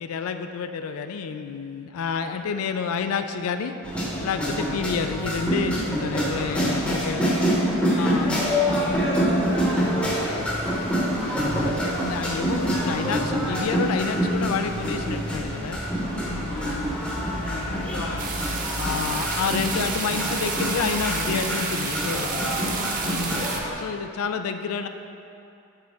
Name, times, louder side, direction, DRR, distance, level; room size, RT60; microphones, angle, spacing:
voice 1, 0.0-3.7 4.2-7.5 8.0-8.6 8.9-9.0 11.4-15.8 16.3-16.9 17.4-18.3 18.8-22.4 23.0-23.5 23.8-24.9, left 6 dB, 75° left, 8 dB, 0.3 m, -29 dB
sound 1, 3.8-23.7, equal, 5° left, 0.8 m, -26 dB
voice 2, 8.8-10.8 16.0-17.0 17.6-18.0 23.1-23.5, left 1 dB, 50° left, -4 dB, 1.0 m, -35 dB
sound 2, 18.2-23.6, right 4 dB, 35° right, 0.5 m, -30 dB
7.3 x 3.8 x 3.4 m, 2.7 s
head